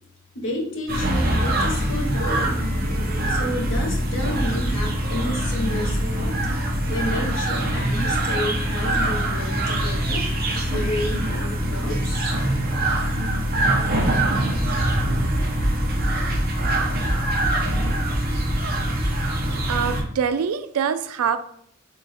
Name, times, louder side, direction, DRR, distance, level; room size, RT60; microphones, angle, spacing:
voice 1, 0.3-2.6 3.3-6.3 6.9-10.2 10.7-12.2, left 1 dB, 60° left, -1 dB, 1.0 m, -30 dB
sound 1, 0.9-20.0, right 1 dB, 45° right, 0.7 m, -23 dB
voice 2, 19.7-21.4, right 7 dB, 90° right, 11 dB, 0.3 m, -24 dB
3.8 x 2.5 x 3.9 m, 0.66 s
head